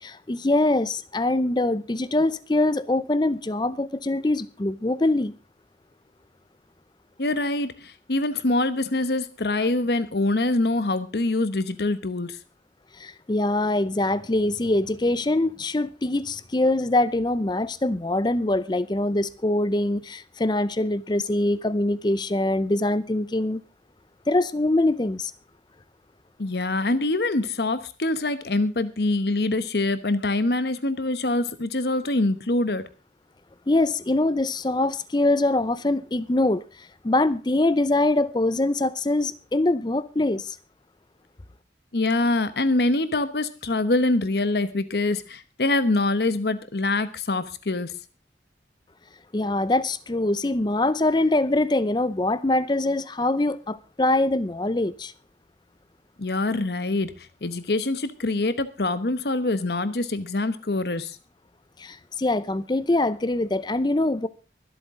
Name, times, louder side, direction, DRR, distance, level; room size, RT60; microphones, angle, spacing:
voice 1, 0.0-5.3 12.9-23.6 24.3-25.3 33.7-40.6 49.3-55.1 61.8-64.3, left 2 dB, 25° left, 0.6 m, -23 dB
voice 2, 7.2-12.4 26.4-32.8 41.9-47.9 56.2-61.2, left 2 dB, 65° left, 1.0 m, -24 dB
24.0 x 8.1 x 3.7 m
head